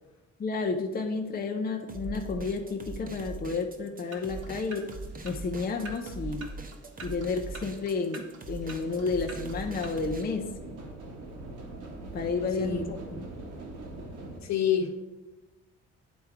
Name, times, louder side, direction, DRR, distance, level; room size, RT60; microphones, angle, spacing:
voice 1, 0.4-4.9 5.2-6.5 7.0-10.5 12.1-13.2, left 4 dB, 30° left, 3 dB, 0.6 m, -31 dB
sound 1, 1.9-10.2, right 3 dB, 30° right, 0.9 m, -41 dB
sound 2, 4.1-9.9, right 3 dB, 55° right, 1.3 m, -48 dB
sound 3, 8.9-14.4, right 2 dB, 80° right, 1.6 m, -42 dB
voice 2, 14.4-14.9, left 8 dB, 65° left, 5 dB, 1.1 m, -27 dB
9.4 x 3.6 x 4.6 m, 1.1 s
cardioid pair, 90°, 30 cm